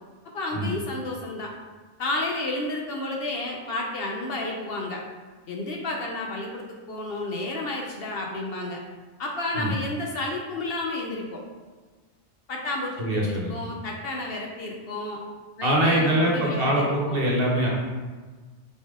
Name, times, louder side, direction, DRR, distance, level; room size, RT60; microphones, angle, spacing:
voice 1, 0.3-1.5 2.0-5.0 5.5-8.8 9.2-11.4 12.5-15.2 15.6-17.2, left 2 dB, 60° left, 0 dB, 0.8 m, -31 dB
voice 2, 13.0-13.5 15.6-17.7, right 1 dB, 55° right, -2 dB, 1.0 m, -23 dB
4.0 x 3.5 x 3.5 m, 1.4 s
omnidirectional pair, 1.2 m